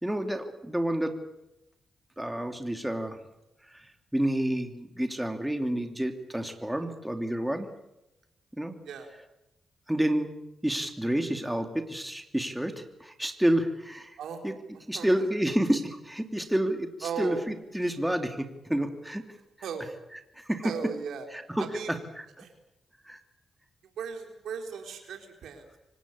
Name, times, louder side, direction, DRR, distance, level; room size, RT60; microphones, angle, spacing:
voice 1, 0.0-1.2 2.2-3.2 3.6-7.7 8.5-8.8 9.9-10.3 10.6-14.2 14.4-14.5 14.9-19.2 20.3-20.7 21.3-22.3 23.0-23.2, right 1 dB, 5° right, 6 dB, 2.9 m, -29 dB
voice 2, 17.0-17.3 19.6-19.9 20.6-21.3 21.7-21.9 22.4-22.5 24.0-25.6, right 6 dB, 80° right, 4 dB, 4.0 m, -36 dB
25.5 x 18.5 x 8.5 m, 0.90 s
cardioid pair, 65°, 0 cm